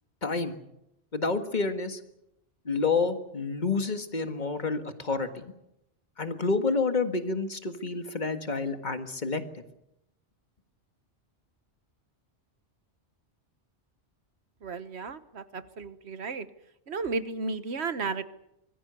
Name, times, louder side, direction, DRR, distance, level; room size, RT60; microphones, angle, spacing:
voice 1, 0.2-0.6 1.1-2.0 2.7-5.5 6.2-9.6, left 4 dB, 40° left, 8 dB, 1.8 m, -29 dB
voice 2, 14.6-16.5 16.9-18.2, right 4 dB, 70° right, 13 dB, 1.4 m, -33 dB
25.0 x 20.5 x 6.9 m, 0.84 s
omnidirectional pair, 1.2 m